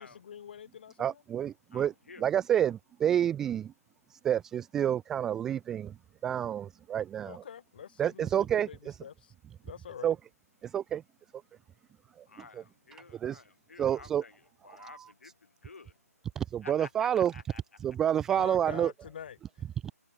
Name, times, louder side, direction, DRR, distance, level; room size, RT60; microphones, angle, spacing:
voice 1, 0.0-1.2 7.2-9.3 9.6-10.1 18.4-19.7, left 8 dB, 35° left, 2.9 m, -46 dB
voice 2, 1.0-1.9 2.2-3.7 4.2-5.9 6.2-7.4 8.0-8.9 10.0-10.2 10.6-11.0 12.5-12.6 13.1-13.4 13.8-14.2 14.7-15.1 16.4-17.3 17.8-18.9 19.8-19.9, right 10 dB, 5° right, 0.4 m, -29 dB
voice 3, 1.7-2.3 12.3-16.0 16.6-17.6, left 4 dB, 55° left, 6.7 m, -51 dB
figure-of-eight pair, 150°, 9 cm